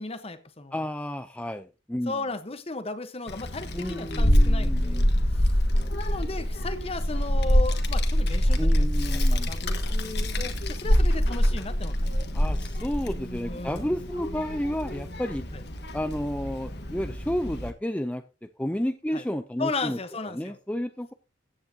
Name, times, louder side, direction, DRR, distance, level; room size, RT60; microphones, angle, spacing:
voice 1, 0.0-0.8 2.0-5.0 5.9-12.3 13.5-14.0 15.5-15.6 19.1-19.2 19.6-20.6, left 3 dB, 30° left, 1.1 m, -35 dB
voice 2, 0.7-2.1 3.7-5.1 8.6-9.5 12.3-15.4 15.9-20.0 20.3-21.1, equal, 5° left, 0.5 m, -31 dB
Child speech kid speaking, 3.3-17.7, equal, 55° left, 1.5 m, -25 dB
15.0 x 8.9 x 2.8 m
head